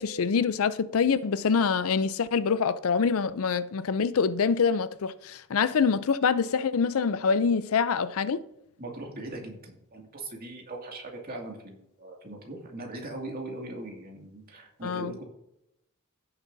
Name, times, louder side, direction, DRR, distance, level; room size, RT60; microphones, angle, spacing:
voice 1, 0.0-8.4 14.8-15.1, left 5 dB, 70° left, 0.5 m, -25 dB
voice 2, 8.8-15.2, right 2 dB, 45° right, 2.3 m, -40 dB
16.0 x 7.1 x 2.7 m
head